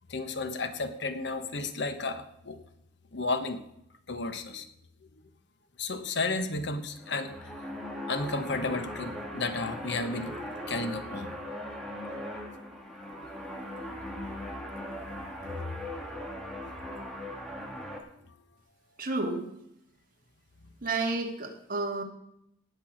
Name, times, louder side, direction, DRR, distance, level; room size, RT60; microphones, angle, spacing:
voice 1, 0.1-2.6 3.1-3.6 4.1-4.7 5.8-7.5 8.1-10.4 10.7-11.3 15.6-15.8 18.2-18.4 20.6-20.7, left 3 dB, 60° left, 9 dB, 1.1 m, -33 dB
sound 1, 6.9-18.0, left 1 dB, ahead, 2.0 m, -39 dB
voice 2, 19.0-19.5 20.8-22.0, right 3 dB, 45° right, 1 dB, 2.2 m, -31 dB
18.5 x 6.9 x 6.3 m, 0.78 s
head